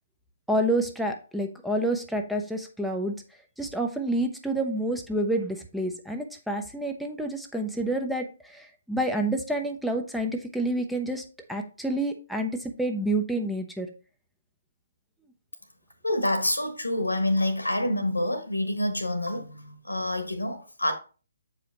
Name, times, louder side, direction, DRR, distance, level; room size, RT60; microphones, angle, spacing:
voice 1, 0.5-3.2 3.6-13.9, right 1 dB, ahead, 3 dB, 0.6 m, -28 dB
voice 2, 16.0-20.9, left 1 dB, 85° left, 7 dB, 1.5 m, -27 dB
7.8 x 4.9 x 2.9 m, 0.36 s
figure-of-eight pair, 135°, 0 cm